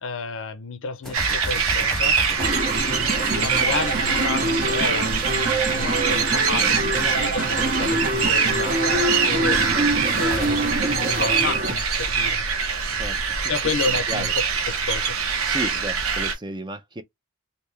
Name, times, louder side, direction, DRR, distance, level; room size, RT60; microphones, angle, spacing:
voice 1, 0.0-2.2 3.3-12.4 13.5-15.2, left 4 dB, 60° left, 0.6 m, -31 dB
sound 1, 1.0-4.5 10.2-12.3, left 1 dB, ahead, 1.2 m, -36 dB
sound 2, 1.1-16.3, right 5 dB, 70° right, 1.0 m, -24 dB
sound 3, 2.4-11.7, right 2 dB, 40° right, 0.9 m, -25 dB
voice 2, 12.9-13.6 14.1-14.3 15.4-17.0, right 2 dB, 20° right, 0.5 m, -33 dB
3.4 x 2.7 x 3.1 m
head